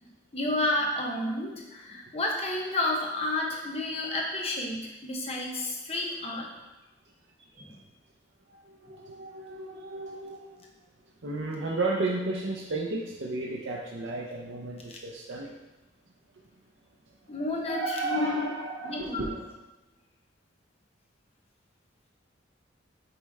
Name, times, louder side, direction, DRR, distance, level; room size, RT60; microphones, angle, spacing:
voice 1, 0.3-6.5 7.6-7.8 14.9-15.0 17.3-18.4 18.8-19.3, left 2 dB, 30° left, -1 dB, 0.9 m, -31 dB
voice 2, 8.5-10.7 11.2-15.5 17.7-19.4, right 2 dB, 65° right, -3 dB, 0.7 m, -33 dB
8.6 x 3.2 x 3.5 m, 1.0 s
head